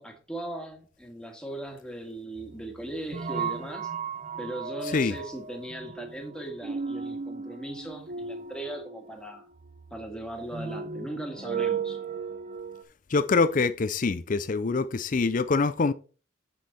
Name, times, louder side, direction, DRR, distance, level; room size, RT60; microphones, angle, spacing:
voice 1, 0.0-3.9 4.4-9.5 9.9-12.0, right 1 dB, 5° left, 1.8 m, -38 dB
sound 1, 2.4-12.8, right 6 dB, 35° right, 0.7 m, -36 dB
voice 2, 13.1-15.9, left 4 dB, 40° left, 0.5 m, -25 dB
8.1 x 6.3 x 4.2 m
head